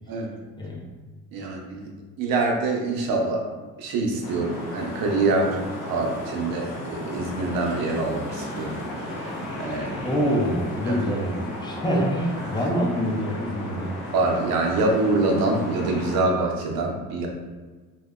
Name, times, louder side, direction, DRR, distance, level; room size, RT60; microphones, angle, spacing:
voice 1, 0.6-0.9 10.0-14.0, equal, 10° left, -2 dB, 0.5 m, -26 dB
voice 2, 1.3-1.9 2.2-3.5 3.8-8.8 9.1-9.9 10.9-11.0 11.9-12.0 12.4-12.5 14.1-17.3, right 3 dB, 70° right, 1 dB, 0.6 m, -25 dB
sound 1, 4.2-16.2, left 1 dB, 85° left, 0.7 m, -34 dB
2.6 x 2.1 x 2.2 m, 1.3 s
supercardioid pair, 75°, 37 cm